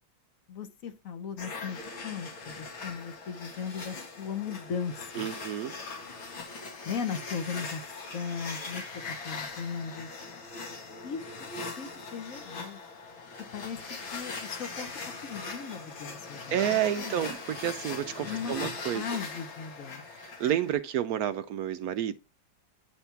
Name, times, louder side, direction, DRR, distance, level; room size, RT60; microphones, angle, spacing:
voice 1, 0.5-5.3 6.8-7.8 8.1-10.1 11.0-11.5 11.8-12.8 13.5-14.9 15.2-16.6 17.0-17.2 18.2-18.5 18.9-20.0, left 6 dB, 55° left, 1.1 m, -37 dB
sound 1, 1.4-20.7, left 4 dB, 85° left, 2.7 m, -40 dB
voice 2, 5.2-5.8 16.5-19.0 20.1-22.1, right 11 dB, 75° right, 0.8 m, -30 dB
9.9 x 3.5 x 5.7 m
omnidirectional pair, 2.1 m